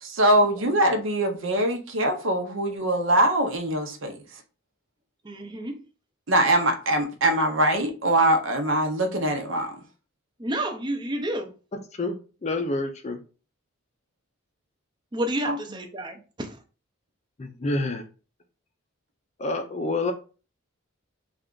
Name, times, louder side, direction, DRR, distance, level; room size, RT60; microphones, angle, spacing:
voice 1, 0.0-4.2 6.3-9.8 15.4-15.6, right 1 dB, 65° right, 0.7 m, -23 dB
voice 2, 5.2-5.8 10.4-11.5 15.1-16.6, right 1 dB, 20° right, 0.5 m, -30 dB
voice 3, 11.7-12.2 12.4-13.2 17.4-18.0 19.4-20.1, left 2 dB, 30° left, 0.4 m, -28 dB
3.4 x 2.4 x 3.7 m
head